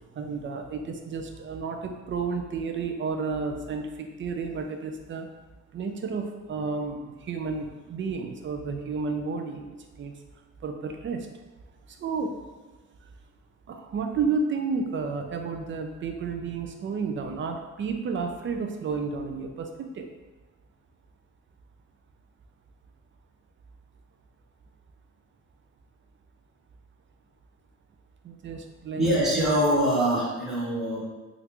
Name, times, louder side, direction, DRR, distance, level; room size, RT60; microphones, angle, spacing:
voice 1, 0.2-5.3 5.7-10.1 10.6-11.3 11.9-12.4 13.7-20.1 28.2-29.1, right 4 dB, 40° right, 5 dB, 0.4 m, -31 dB
voice 2, 29.0-31.0, right 1 dB, ahead, -9 dB, 1.1 m, -24 dB
3.2 x 2.5 x 2.9 m, 1.2 s
cardioid pair, 90°, 30 cm